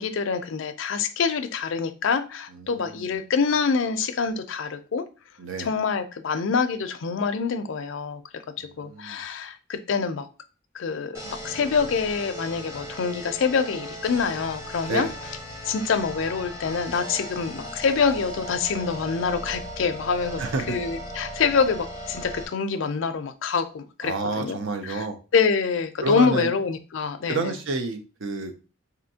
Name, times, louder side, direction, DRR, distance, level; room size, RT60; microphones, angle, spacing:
voice 1, 0.0-5.1 5.6-8.2 8.6-10.3 10.7-15.1 15.6-25.1 25.3-27.4, left 5 dB, 70° left, 9 dB, 0.4 m, -26 dB
voice 2, 2.5-3.1 5.4-5.7 8.6-9.2 14.9-15.1 20.4-20.8 24.0-25.2 26.0-26.5 27.3-28.7, right 3 dB, 65° right, 6 dB, 0.6 m, -29 dB
sound 1, 11.1-22.4, equal, 15° right, 0.7 m, -37 dB
4.2 x 2.6 x 2.7 m, 0.34 s
head